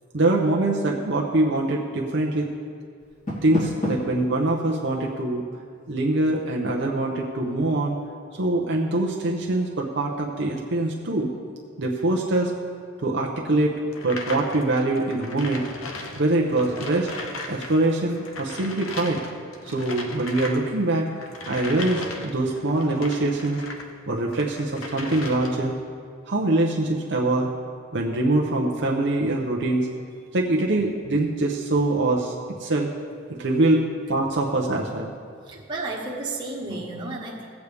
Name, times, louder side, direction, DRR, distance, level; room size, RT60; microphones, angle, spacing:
voice 1, 0.1-2.5 3.4-5.4 5.9-8.0 8.3-11.3 11.8-12.5 13.0-15.7 16.2-17.1 17.5-19.2 19.6-23.6 24.1-25.7 26.3-27.5 27.9-29.9 30.3-32.3 32.6-32.9 33.4-35.1, right 2 dB, 60° right, -1 dB, 0.8 m, -23 dB
Door, 3.0-4.2, equal, 35° left, 2.6 m, -29 dB
sound 1, 13.9-17.7 18.0-23.9 24.3-25.7, left 2 dB, 80° left, 0.9 m, -37 dB
voice 2, 35.4-37.4, right 2 dB, 20° right, -4 dB, 1.4 m, -32 dB
15.5 x 8.2 x 3.4 m, 2.1 s
head